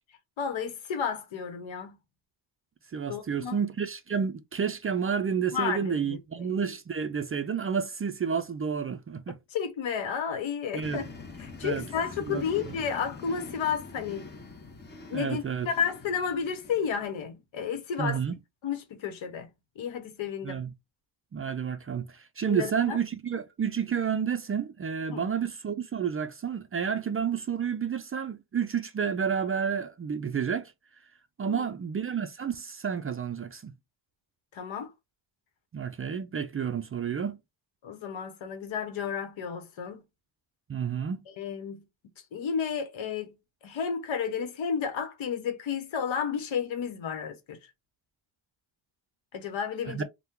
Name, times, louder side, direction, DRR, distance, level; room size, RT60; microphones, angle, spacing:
voice 1, 0.4-2.0 3.1-3.6 5.5-6.6 9.5-11.0 11.4-14.3 15.1-18.2 18.6-19.5 19.8-20.6 22.5-23.0 25.1-25.2 31.4-31.7 34.5-34.9 37.8-40.0 41.4-41.8 42.3-43.4 43.6-47.6 49.3-50.0, left 7 dB, 75° left, 1.0 m, -32 dB
voice 2, 2.9-9.4 10.7-11.1 11.6-11.8 12.3-12.8 15.1-15.7 18.0-18.4 20.4-20.7 21.3-30.7 31.4-33.7 35.7-37.4 40.7-41.2 49.9-50.0, right 7 dB, 30° right, 0.4 m, -30 dB
sound 1, 10.8-17.2, left 3 dB, 20° left, 0.9 m, -45 dB
2.8 x 2.2 x 3.5 m
cardioid pair, 75°, 47 cm